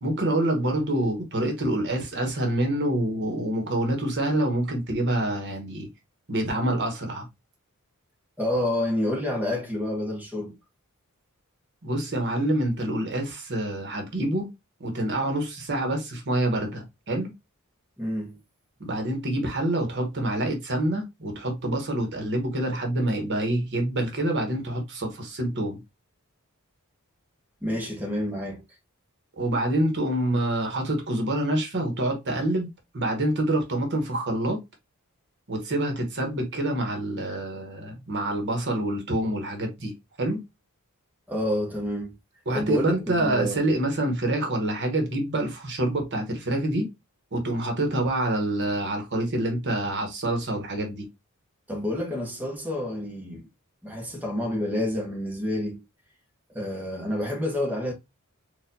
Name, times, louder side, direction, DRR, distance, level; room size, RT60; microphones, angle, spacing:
voice 1, 0.0-5.9 6.3-7.3 11.8-14.5 14.8-17.3 18.8-25.8 29.4-32.7 32.9-34.6 35.5-39.9 40.2-40.4 42.5-46.9 47.3-51.1, right 1 dB, 55° right, 1.1 m, -26 dB
voice 2, 8.4-10.6 18.0-18.4 27.6-28.6 41.3-42.1 42.5-43.7 51.7-53.5 53.8-55.8 56.5-57.9, left 1 dB, 10° right, 0.9 m, -29 dB
4.4 x 2.5 x 2.6 m
head